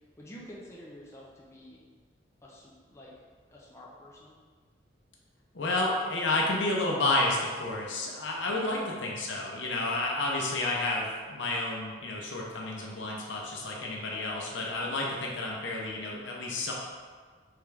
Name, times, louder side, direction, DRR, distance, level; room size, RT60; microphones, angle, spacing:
voice 1, 0.2-1.8 2.4-3.1 3.5-4.3 8.5-8.7, left 1 dB, 15° left, -5 dB, 0.5 m, -48 dB
voice 2, 5.5-16.7, left 2 dB, 75° left, -2 dB, 0.8 m, -30 dB
3.7 x 3.4 x 3.3 m, 1.5 s
head